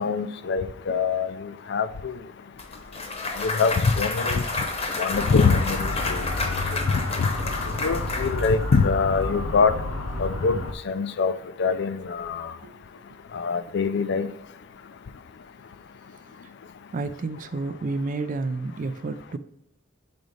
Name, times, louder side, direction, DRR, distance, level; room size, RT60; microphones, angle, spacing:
voice 1, 0.0-2.2 3.4-4.4 5.0-6.2 7.2-7.3 7.8-9.7 10.2-10.6 10.9-11.3 11.6-12.5 13.3-14.3, left 5 dB, 55° left, 13 dB, 0.4 m, -24 dB
Clapping / Cheering / Applause, 2.6-8.8, left 3 dB, 30° left, 0.8 m, -30 dB
Motor vehicle (road) / Siren, 5.1-10.7, left 2 dB, 80° left, 0.7 m, -30 dB
voice 2, 16.9-19.4, right 3 dB, 40° right, 11 dB, 0.3 m, -30 dB
5.2 x 4.0 x 4.9 m, 0.78 s
head